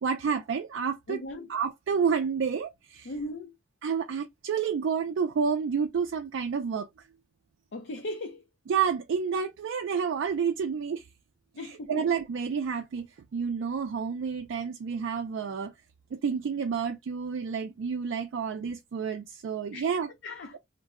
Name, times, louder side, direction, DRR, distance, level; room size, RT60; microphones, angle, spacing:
voice 1, 0.0-1.2 1.5-3.1 3.8-6.9 8.7-11.1 11.6-15.7 16.1-20.1, right 6 dB, 65° right, 0.3 m, -29 dB
voice 2, 1.1-1.5 3.1-3.5 7.7-8.4 11.6-11.9 19.7-19.9 20.2-20.6, left 1 dB, 60° left, 0.5 m, -37 dB
2.5 x 2.0 x 3.5 m
head